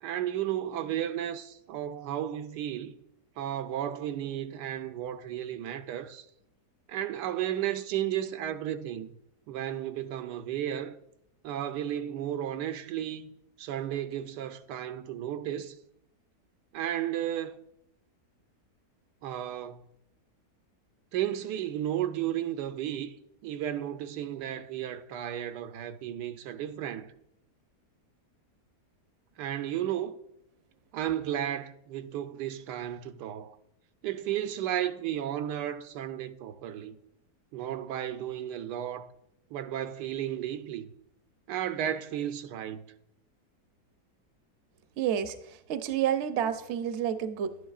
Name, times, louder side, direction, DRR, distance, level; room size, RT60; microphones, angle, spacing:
voice 1, 0.0-3.0 3.4-6.2 6.9-9.1 9.5-11.0 11.4-13.3 13.6-15.8 16.7-17.6 19.2-19.8 21.1-23.2 23.4-27.1 29.4-30.2 30.9-33.6 34.0-37.0 37.5-39.1 39.5-40.9 41.5-42.8, right 11 dB, 85° right, 1.2 m, -33 dB
voice 2, 45.0-47.6, right 9 dB, 60° right, 0.8 m, -30 dB
11.5 x 9.8 x 2.4 m
omnidirectional pair, 1.7 m